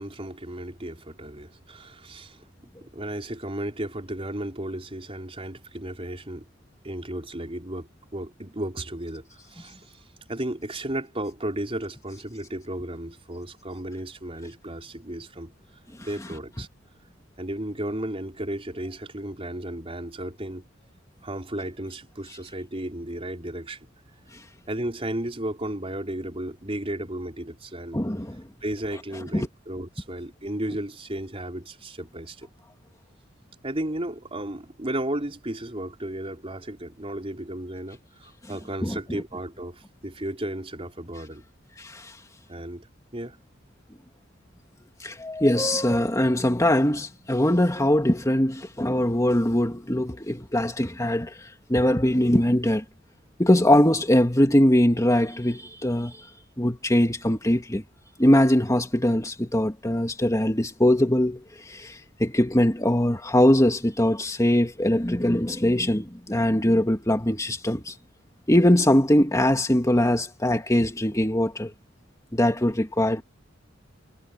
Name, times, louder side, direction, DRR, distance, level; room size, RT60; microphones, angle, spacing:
voice 1, 0.0-2.4 2.8-6.5 6.8-10.0 10.3-15.5 16.0-16.7 17.4-20.6 21.2-23.8 24.7-28.0 28.6-32.5 33.6-41.4 42.5-42.9 43.1-43.4, right 1 dB, 30° right, 4.0 m, -34 dB
voice 2, 27.9-28.4 29.3-29.5 38.8-39.2 41.8-42.1 45.0-51.4 51.7-52.8 53.4-56.3 56.6-57.8 58.2-67.9 68.5-71.7 72.3-73.2, left 1 dB, 15° left, 2.6 m, -22 dB
head